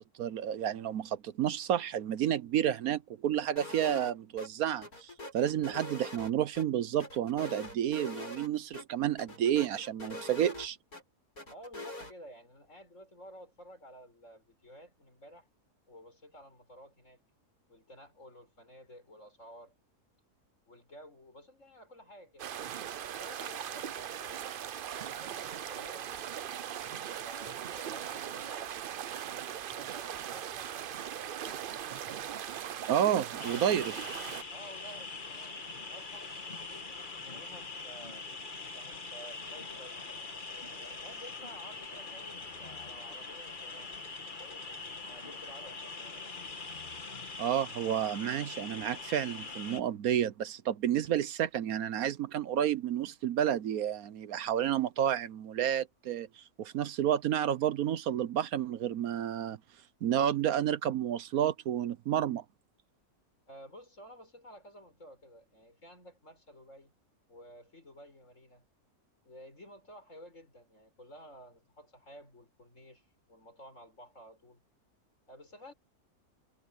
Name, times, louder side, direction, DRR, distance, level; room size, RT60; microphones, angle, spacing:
voice 1, 0.2-10.8 32.9-33.8 47.4-59.6 60.0-62.4, right 10 dB, 75° right, 1.2 m, -30 dB
sound 1, 3.6-4.1 4.4-4.5 4.8-6.6 7.0-8.5 8.7-8.8 9.2-11.0 11.4-12.1, left 1 dB, 75° left, 8.6 m, -43 dB
voice 2, 11.5-15.5 15.9-17.2 17.7-19.7 20.7-22.5 23.1-24.4 24.7-26.1 26.8-29.0 29.7-31.6 33.3-34.0 34.5-38.3 38.7-40.0 40.9-44.0 44.3-46.3 63.5-66.9 67.3-68.6 69.2-74.6 75.3-75.7, equal, 55° left, 7.6 m, -53 dB
sound 2, 22.4-34.4, right 9 dB, 60° right, 0.5 m, -39 dB
sound 3, 33.4-49.8, left 3 dB, 35° left, 1.6 m, -43 dB
omnidirectional pair, 1.6 m